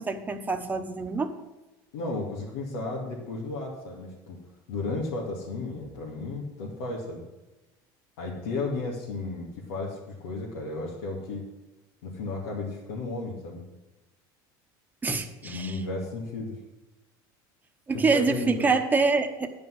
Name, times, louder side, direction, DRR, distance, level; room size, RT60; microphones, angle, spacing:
voice 1, 0.0-1.3 15.0-15.8 17.9-19.5, right 4 dB, 15° right, 5 dB, 1.1 m, -26 dB
voice 2, 1.9-4.4 4.7-7.2 8.2-11.4 12.0-13.6 15.4-16.5 17.9-18.7, left 3 dB, 90° left, -5 dB, 2.3 m, -34 dB
10.5 x 5.4 x 7.8 m, 1.1 s
supercardioid pair, 120°, 11 cm